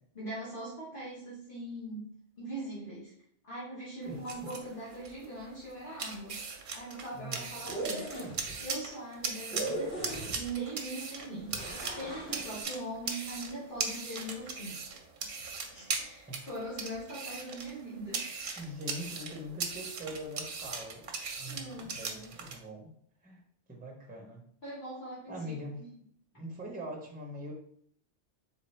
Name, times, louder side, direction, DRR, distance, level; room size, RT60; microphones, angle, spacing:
voice 1, 0.1-3.1 3.4-6.4 6.7-11.6 12.0-14.8 15.2-18.6 21.5-22.2 24.6-25.9, right 1 dB, 50° left, -8 dB, 1.3 m, -41 dB
voice 2, 4.0-4.5 7.1-7.5 16.3-16.4 18.6-21.0 21.4-22.9 23.2-23.4 23.7-24.4 25.3-25.8 26.3-27.5, equal, 10° right, 0 dB, 0.6 m, -42 dB
sound 1, 4.0-22.6, right 5 dB, 55° right, 0.7 m, -40 dB
sound 2, 7.5-8.5 9.5-10.6 11.5-12.5, right 1 dB, 80° left, 2.1 m, -38 dB
4.0 x 3.3 x 3.2 m, 0.65 s
omnidirectional pair, 1.2 m